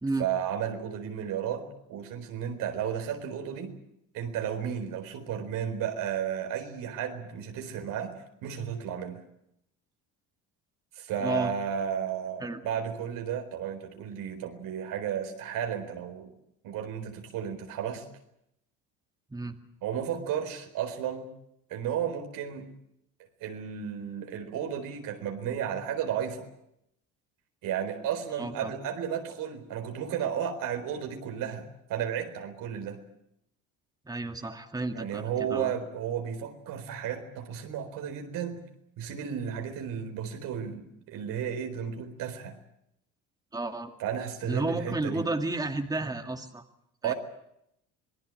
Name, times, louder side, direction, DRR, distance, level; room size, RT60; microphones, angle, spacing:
voice 1, 0.2-3.7 4.1-9.2 10.9-16.3 16.6-18.0 19.8-21.3 21.7-22.7 23.4-26.5 27.6-33.0 34.9-38.6 39.0-42.6 44.0-45.3 47.0-47.1, right 8 dB, 75° right, 5 dB, 4.2 m, -33 dB
voice 2, 28.4-28.7 34.1-35.7 43.5-43.9 44.5-46.7 47.0-47.1, right 2 dB, 10° right, 5 dB, 2.2 m, -32 dB
27.0 x 19.5 x 7.7 m, 0.77 s
supercardioid pair, 90°, 33 cm